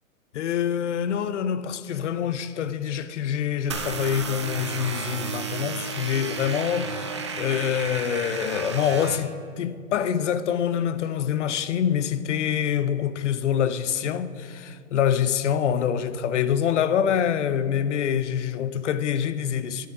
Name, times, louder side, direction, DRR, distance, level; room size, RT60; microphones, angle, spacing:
voice 1, 0.3-19.9, left 9 dB, 55° left, 0.7 m, -25 dB
sound 1, 3.7-9.2, right 4 dB, 25° right, 0.3 m, -32 dB
10.5 x 9.5 x 5.9 m
hypercardioid pair, 150°, 42 cm